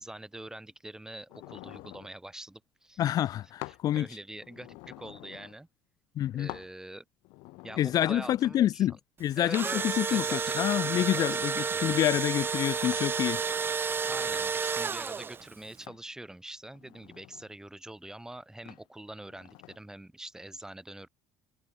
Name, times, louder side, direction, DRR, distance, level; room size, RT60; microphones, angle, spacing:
voice 1, 0.0-3.0 3.7-5.7 6.3-7.0 7.6-8.9 9.4-12.2 14.0-21.1, right 1 dB, 5° right, 4.6 m, -44 dB
sound 1, 1.3-2.1 3.6-3.9 4.3-5.6 6.5-6.7 7.2-8.5 9.8-10.0 10.6-11.4 12.9-13.2 13.8-14.8 15.9-16.1 16.7-17.5 18.7-18.9 19.3-19.8, left 25 dB, 80° left, 1.1 m, -48 dB
voice 2, 3.0-4.1 6.2-6.5 7.8-8.9 9.2-13.4, left 12 dB, 50° left, 0.5 m, -27 dB
Engine / Drill, 9.3-15.5, right 5 dB, 30° right, 1.4 m, -31 dB
supercardioid pair, 105°, 8 cm